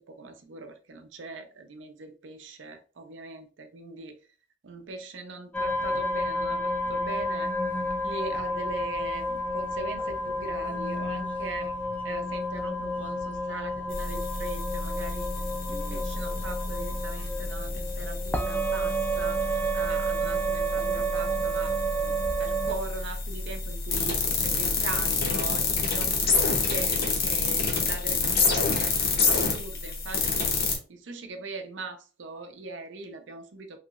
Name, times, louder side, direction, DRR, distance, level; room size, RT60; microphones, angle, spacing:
voice 1, 0.0-4.2 4.6-7.5 8.0-11.7 12.0-15.3 15.7-22.1 22.4-30.5 30.9-33.8, right 3 dB, 85° right, 0.6 m, -40 dB
sound 1, 5.5-22.7, right 1 dB, 10° left, 0.4 m, -30 dB
sound 2, 13.9-30.8, left 4 dB, 55° left, 0.8 m, -28 dB
3.1 x 2.9 x 2.4 m
head